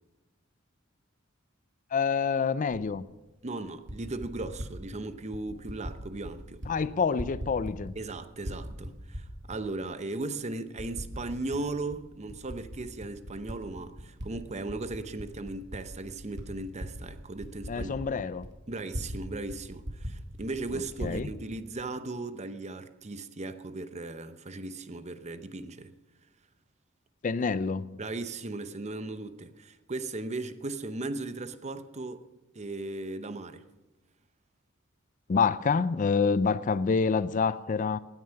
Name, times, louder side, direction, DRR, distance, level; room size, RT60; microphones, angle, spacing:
voice 1, 1.9-3.0 6.7-7.9 17.7-18.5 21.0-21.3 27.2-28.0 35.3-38.0, left 5 dB, 40° left, 0.4 m, -27 dB
Typing, 2.7-2.8 3.7-4.7 5.3-6.0 6.2-6.7 7.0-8.1 8.4-9.6 10.1-10.2 10.8-11.6 11.9-14.3 14.6-19.2 19.5-19.6 19.8-21.2, equal, 60° right, 2.3 m, -39 dB
voice 2, 3.4-6.6 8.0-18.0 18.7-25.9 28.0-32.2 32.5-33.6, right 2 dB, 35° right, 0.8 m, -37 dB
17.0 x 9.7 x 5.7 m
head